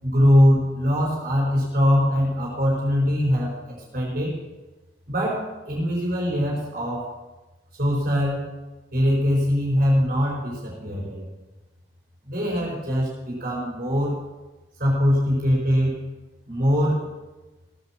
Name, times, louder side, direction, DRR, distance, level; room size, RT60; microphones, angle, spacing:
voice 1, 0.0-3.6 3.9-4.4 5.1-7.1 7.8-8.5 8.9-11.2 12.2-14.2 14.8-16.0 16.5-17.1, equal, 50° right, -4 dB, 4.9 m, -22 dB
17.5 x 9.1 x 7.5 m, 1.1 s
head